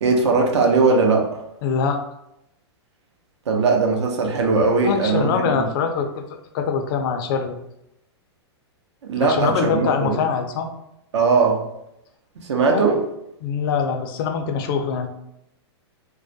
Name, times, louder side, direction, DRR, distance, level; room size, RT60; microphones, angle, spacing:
voice 1, 0.0-1.3 3.5-5.7 9.0-10.2 11.1-11.6 12.4-13.0, right 4 dB, 80° right, 2 dB, 0.6 m, -19 dB
voice 2, 1.6-2.0 4.8-7.6 9.2-10.7 12.7-12.9 13.4-15.1, left 6 dB, 50° left, 5 dB, 0.4 m, -23 dB
2.3 x 2.1 x 2.6 m, 0.83 s
hypercardioid pair, 130°, 14 cm